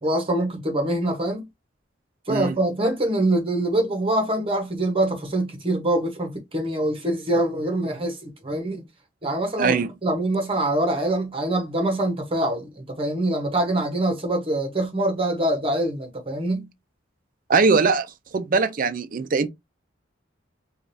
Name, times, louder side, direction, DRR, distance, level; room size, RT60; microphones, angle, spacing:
voice 1, 0.0-1.5 2.3-8.8 9.2-9.8 10.0-16.7, right 1 dB, 30° right, 1.0 m, -24 dB
voice 2, 9.6-9.9 17.5-18.1 18.3-19.5, right 4 dB, 45° right, 0.4 m, -21 dB
5.0 x 2.4 x 2.6 m
head